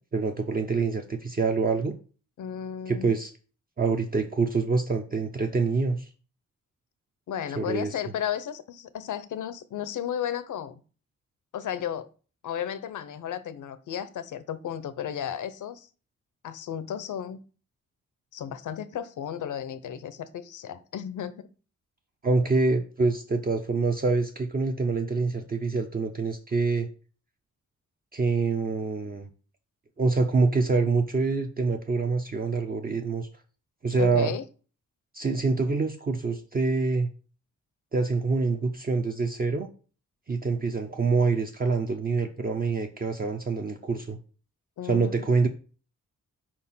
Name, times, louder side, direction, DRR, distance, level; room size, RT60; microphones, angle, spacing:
voice 1, 0.1-1.9 2.9-3.3 3.8-6.1 7.6-8.0 22.2-26.9 28.1-29.3 30.0-33.3 33.8-34.3 35.1-37.1 37.9-39.7 40.3-44.2 44.8-45.5, right 4 dB, 30° right, 0.6 m, -26 dB
voice 2, 2.4-3.1 7.3-10.8 11.5-12.1 12.4-15.9 16.4-17.4 18.3-21.3 34.0-34.4 44.8-45.3, left 9 dB, 80° left, 0.7 m, -34 dB
5.0 x 4.4 x 5.5 m
wide cardioid pair, 145°, 30 cm